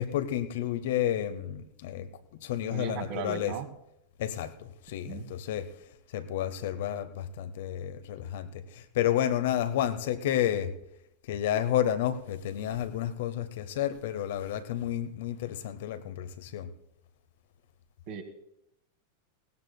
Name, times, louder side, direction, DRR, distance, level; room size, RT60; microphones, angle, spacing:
voice 1, 0.0-2.1 2.4-3.5 4.2-5.7 6.1-10.7 11.3-16.7, left 11 dB, 55° left, 11 dB, 0.9 m, -31 dB
voice 2, 2.7-3.7 5.1-5.3 18.1-18.2, right 7 dB, 45° right, 6 dB, 1.9 m, -37 dB
20.5 x 18.0 x 2.2 m, 0.81 s
figure-of-eight pair, 90°, 0 cm